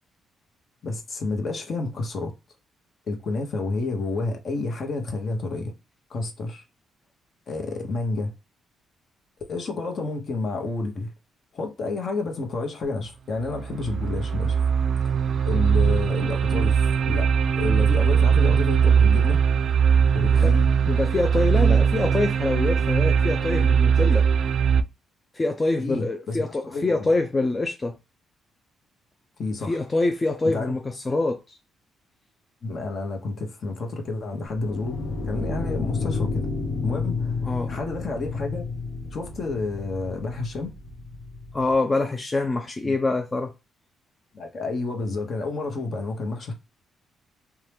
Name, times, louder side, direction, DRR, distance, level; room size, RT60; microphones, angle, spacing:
voice 1, 0.8-2.3 3.1-5.7 6.1-6.6 7.5-8.3 9.5-11.1 11.5-14.6 15.0-15.2 15.5-17.3 17.6-19.4 20.1-20.7 25.8-26.4 26.6-27.1 29.4-29.8 30.4-30.7 32.6-36.5 36.8-37.4 37.7-38.6 39.1-40.7 42.8-42.9 44.3-46.5, left 3 dB, 50° left, 1.0 m, -30 dB
sound 1, 13.5-24.8, right 7 dB, 60° right, 0.3 m, -20 dB
voice 2, 20.3-20.6 20.9-24.3 25.3-28.0 29.6-31.6 37.4-37.7 41.5-43.5, left 2 dB, 25° left, 0.4 m, -25 dB
sound 2, 34.5-41.7, left 3 dB, 85° left, 0.7 m, -31 dB
2.8 x 2.3 x 3.3 m
cardioid pair, 90°, 0 cm